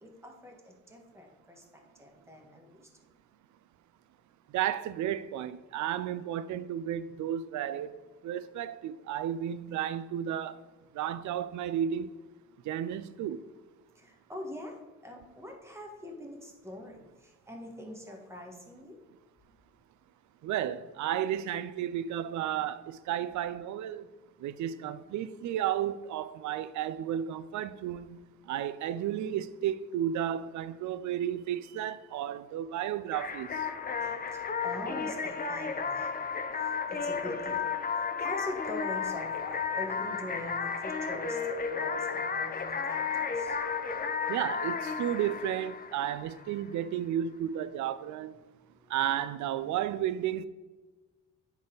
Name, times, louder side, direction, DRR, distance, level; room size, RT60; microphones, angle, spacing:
voice 1, 0.0-1.6 2.0-2.8 13.9-19.0 34.0-36.3 36.6-37.7 38.0-43.6 48.8-48.9, left 1 dB, 10° right, 1.6 m, -43 dB
voice 2, 4.5-7.9 8.2-10.6 10.9-12.1 12.6-13.4 20.4-24.1 24.4-33.6 44.3-48.3 48.9-50.5, right 10 dB, 75° right, 0.5 m, -33 dB
sound 1, 33.1-46.6, left 5 dB, 30° left, 0.7 m, -33 dB
9.6 x 4.2 x 4.0 m
cardioid pair, 90°, 30 cm